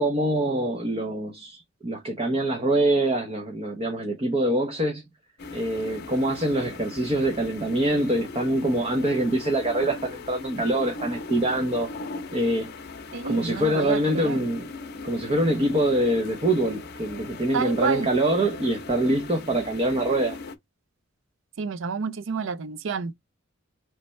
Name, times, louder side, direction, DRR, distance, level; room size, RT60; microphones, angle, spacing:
voice 1, 0.0-5.0 5.5-11.9 12.3-12.7 13.2-14.6 15.0-20.4, right 1 dB, 30° right, 0.7 m, -24 dB
sound 1, 5.4-20.5, left 3 dB, 50° left, 0.7 m, -39 dB
voice 2, 13.1-14.4 17.5-18.1 21.6-23.1, right 5 dB, 65° right, 0.5 m, -29 dB
4.1 x 3.3 x 3.2 m
head